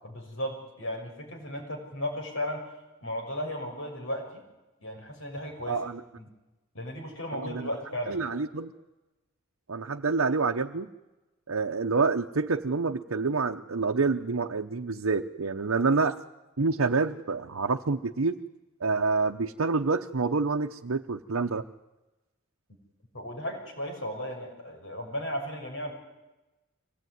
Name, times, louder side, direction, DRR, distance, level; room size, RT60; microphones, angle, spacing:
voice 1, 0.1-2.6 3.0-4.4 4.8-5.9 6.2-6.3 6.7-8.2 23.1-25.9, equal, 80° left, 1 dB, 6.3 m, -35 dB
voice 2, 5.7-6.0 7.3-7.7 8.1-8.7 9.7-10.9 11.5-16.1 16.6-18.4 18.8-21.6, right 4 dB, 85° right, 2 dB, 0.8 m, -27 dB
24.5 x 18.5 x 9.5 m, 1.1 s
head